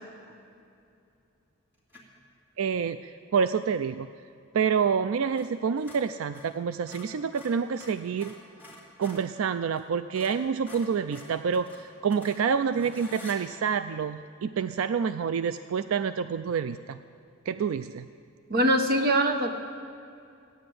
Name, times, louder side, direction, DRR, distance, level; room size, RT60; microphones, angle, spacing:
sound 1, 1.9-2.2 5.3-5.5 5.8-9.3 9.7-9.9 10.1-13.4, left 2 dB, 10° right, 2.2 m, -48 dB
voice 1, 2.6-4.1 4.5-8.3 9.0-17.0 17.5-18.1, right 6 dB, 80° right, 11 dB, 0.4 m, -28 dB
voice 2, 18.5-19.5, right 1 dB, 45° right, 5 dB, 1.1 m, -23 dB
15.0 x 9.9 x 7.7 m, 2.5 s
head